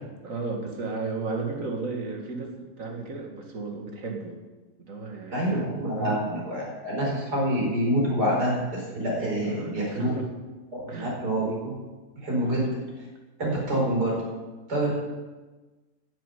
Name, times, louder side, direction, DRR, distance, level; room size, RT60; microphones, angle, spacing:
voice 1, 0.2-4.4 4.8-6.2 9.4-10.3 10.9-11.2 12.4-12.7, right 4 dB, 55° right, 1 dB, 2.3 m, -34 dB
voice 2, 5.3-10.1 10.7-11.8 12.2-12.7 13.4-14.2 14.7-14.9, right 1 dB, 85° right, -4 dB, 5.3 m, -26 dB
11.0 x 7.6 x 9.2 m, 1.2 s
omnidirectional pair, 1.7 m